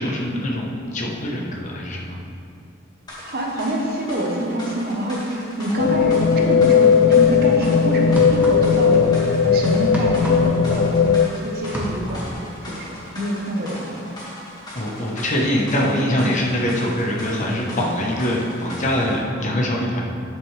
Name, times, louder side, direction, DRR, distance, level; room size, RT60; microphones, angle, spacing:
voice 1, 0.0-2.2 14.7-20.0, left 1 dB, 40° left, -1 dB, 1.1 m, -23 dB
sound 1, 3.1-19.2, left 1 dB, 20° left, 1.9 m, -38 dB
voice 2, 3.2-12.3 12.6-13.9, right 1 dB, 50° right, 0 dB, 1.1 m, -25 dB
sound 2, 5.8-11.3, left 7 dB, 60° left, 0.3 m, -17 dB
sound 3, 8.1-8.9 9.2-11.3 11.6-12.4, equal, 10° right, 1.1 m, -30 dB
9.4 x 7.9 x 3.3 m, 2.5 s
head